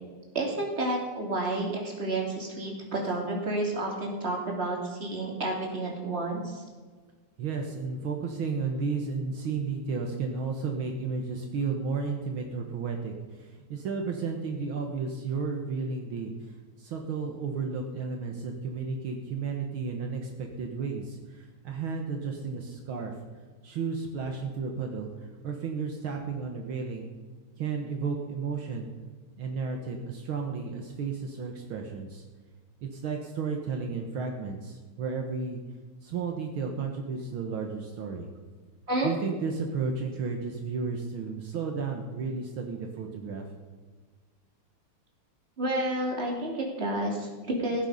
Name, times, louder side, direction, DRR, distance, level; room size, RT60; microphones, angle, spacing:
voice 1, 0.3-6.6 38.9-39.1 45.6-47.9, right 1 dB, 30° right, -1 dB, 2.9 m, -30 dB
voice 2, 7.4-16.3 16.8-23.1 23.6-25.1 25.4-27.1 27.6-28.9 29.4-32.2 32.8-35.6 36.0-38.3 39.0-43.5, right 5 dB, 70° right, 2 dB, 2.0 m, -33 dB
16.0 x 9.3 x 5.5 m, 1.4 s
omnidirectional pair, 2.4 m